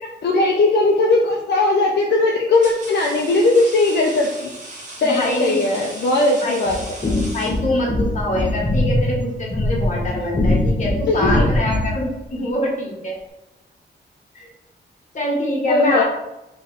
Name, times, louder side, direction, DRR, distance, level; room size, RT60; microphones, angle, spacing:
voice 1, 0.2-4.5 5.0-6.8 11.1-11.5 15.7-16.0, left 2 dB, 65° left, 0 dB, 0.6 m, -18 dB
sound 1, 1.0-1.3 2.1-8.1, right 2 dB, 40° right, 1.2 m, -37 dB
voice 2, 5.0-5.7 6.4-6.6 7.3-13.2 14.3-14.5 15.1-16.0, left 1 dB, 45° left, -2 dB, 1.5 m, -24 dB
sound 2, 6.7-12.0, left 1 dB, 25° left, 0.8 m, -22 dB
4.5 x 3.1 x 3.4 m, 0.96 s
wide cardioid pair, 115°, 18 cm